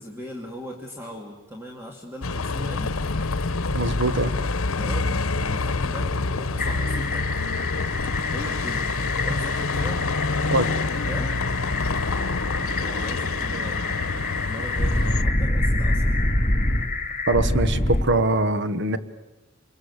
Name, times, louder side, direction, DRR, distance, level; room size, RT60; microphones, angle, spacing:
voice 1, 0.0-3.0 4.7-7.6 8.3-8.9 9.2-10.1 10.5-11.4 12.6-16.1, equal, 10° right, 0 dB, 2.4 m, -39 dB
Bus, 2.2-15.2, left 3 dB, 85° left, 1.0 m, -27 dB
voice 2, 3.7-4.3 10.5-10.7 17.3-19.0, right 2 dB, 60° right, 12 dB, 1.3 m, -22 dB
sound 1, 6.6-18.0, left 1 dB, 40° left, 3.3 m, -26 dB
27.5 x 23.0 x 8.1 m, 1.0 s
head